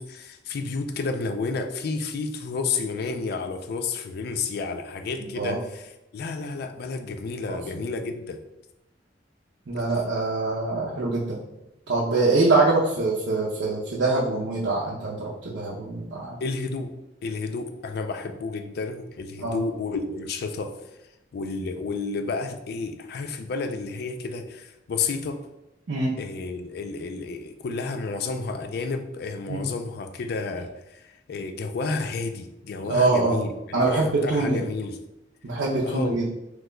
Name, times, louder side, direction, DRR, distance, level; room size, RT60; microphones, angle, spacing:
voice 1, 0.0-8.4 16.4-16.9 17.2-20.7 21.3-25.4 26.2-35.0 35.8-36.2, left 4 dB, 60° left, 7 dB, 0.4 m, -31 dB
voice 2, 9.7-11.4 11.9-16.4 19.4-19.6 25.9-26.1 29.5-29.6 32.9-33.4 33.7-34.6 35.4-36.3, right 3 dB, 85° right, -5 dB, 0.6 m, -24 dB
3.0 x 2.2 x 3.7 m, 0.93 s
head